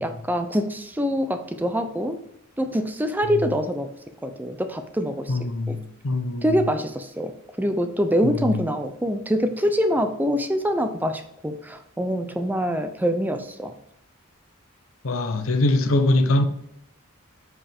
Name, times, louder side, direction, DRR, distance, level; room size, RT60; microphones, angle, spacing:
voice 1, 0.0-2.2 2.6-3.9 4.2-5.4 5.7-5.8 6.4-7.3 7.6-13.7, equal, 10° right, 0.5 m, -25 dB
voice 2, 5.3-6.4 8.2-8.3 15.0-16.4, left 2 dB, 80° left, 0.8 m, -22 dB
7.6 x 4.8 x 3.5 m
head